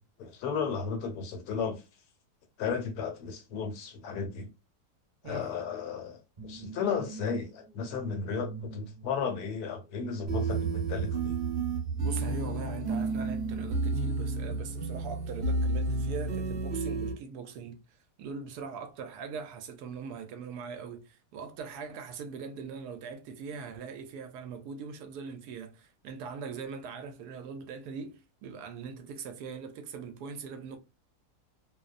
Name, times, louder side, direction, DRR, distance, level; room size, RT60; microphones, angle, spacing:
voice 1, 0.2-1.8 2.6-4.5 5.2-11.4, left 6 dB, 75° left, 1.2 m, -34 dB
sound 1, 6.4-17.2, right 4 dB, 30° right, 1.3 m, -43 dB
sound 2, 10.3-17.1, right 3 dB, 45° right, 1.0 m, -31 dB
voice 2, 12.0-30.8, right 5 dB, 75° right, 1.1 m, -41 dB
2.8 x 2.0 x 2.4 m
omnidirectional pair, 1.8 m